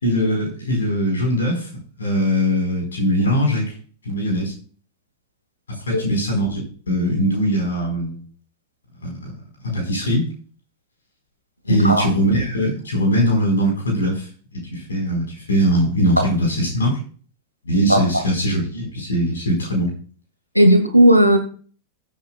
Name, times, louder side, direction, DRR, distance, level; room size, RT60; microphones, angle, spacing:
voice 1, 0.0-1.7 2.0-3.7 4.0-4.5 5.9-6.6 6.9-8.2 9.0-9.3 9.6-10.3 11.7-17.0 17.6-19.9, equal, 70° left, 1 dB, 4.4 m, -21 dB
voice 2, 11.7-12.1 16.2-16.3 17.7-18.0 20.5-21.4, right 1 dB, 90° right, 6 dB, 1.7 m, -14 dB
18.5 x 8.2 x 2.3 m, 0.42 s
figure-of-eight pair, 90°, 0 cm